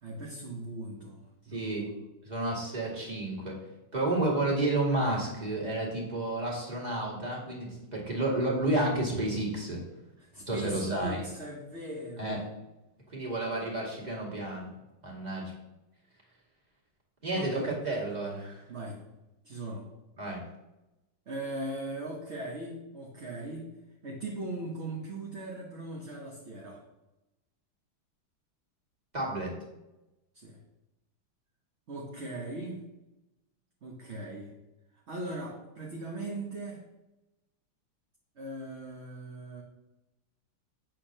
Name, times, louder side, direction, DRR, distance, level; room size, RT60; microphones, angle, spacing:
voice 1, 0.0-1.8 10.2-12.5 17.3-17.8 18.7-19.0 19.4-19.9 21.3-23.7 24.0-26.8 30.3-30.6 31.9-32.8 33.8-34.5 35.1-36.8 38.4-39.6, right 2 dB, 40° right, -1 dB, 1.2 m, -39 dB
voice 2, 1.5-1.9 2.2-3.6 3.9-9.8 10.5-11.2 12.2-12.4 13.1-14.7 15.0-15.5 17.2-18.6 20.2-20.4 29.1-29.5, right 2 dB, 20° right, -3 dB, 2.3 m, -31 dB
8.3 x 4.5 x 6.5 m, 0.97 s
omnidirectional pair, 2.2 m